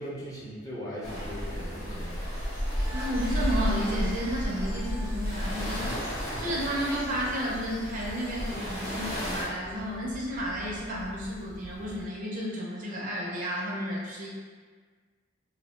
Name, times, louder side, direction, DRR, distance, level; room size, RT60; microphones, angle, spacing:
voice 1, 0.0-2.3, equal, 15° left, -7 dB, 0.5 m, -39 dB
sound 1, 1.0-9.4, equal, 35° left, 0.9 m, -32 dB
Bird vocalization bird call bird song, 2.0-12.0, equal, 85° left, 0.7 m, -44 dB
sound 2, 2.0-6.2, right 1 dB, 80° right, 0.6 m, -48 dB
voice 2, 2.9-5.9 6.4-14.3, equal, 40° right, -4 dB, 0.5 m, -32 dB
2.5 x 2.0 x 3.0 m, 1.5 s
head